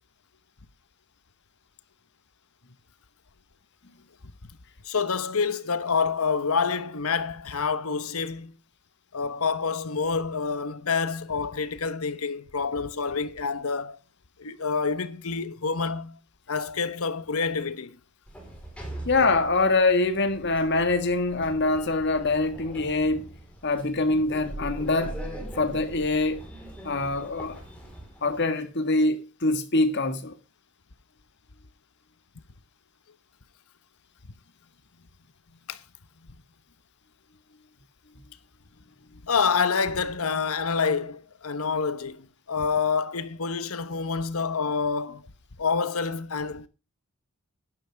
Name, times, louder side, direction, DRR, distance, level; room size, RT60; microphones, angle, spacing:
voice 1, 4.8-8.5 9.1-14.0 14.4-16.2 16.5-18.0 35.7-35.8 39.3-45.2 45.6-46.7, left 5 dB, 75° left, 1.1 m, -27 dB
Sliding door, 18.3-28.4, right 1 dB, 5° left, 4.0 m, -41 dB
voice 2, 19.0-23.3 23.6-25.2 25.5-26.4 26.8-27.6 28.2-30.3, left 2 dB, 50° left, 1.7 m, -24 dB
11.5 x 11.0 x 3.5 m
head